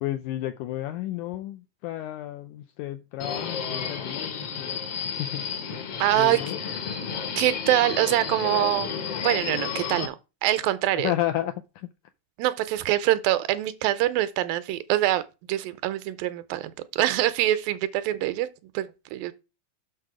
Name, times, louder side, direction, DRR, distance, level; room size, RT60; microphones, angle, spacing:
voice 1, 0.0-5.5 6.1-6.6 11.0-11.9, left 14 dB, 85° left, 1.8 m, -32 dB
Subway metro underground, 3.2-10.1, left 6 dB, 60° left, 1.6 m, -32 dB
voice 2, 6.0-6.4 7.4-8.9 9.2-10.2 10.4-11.1 12.4-15.2 15.5-19.3, right 14 dB, 85° right, 2.4 m, -24 dB
6.4 x 6.1 x 4.8 m
omnidirectional pair, 4.0 m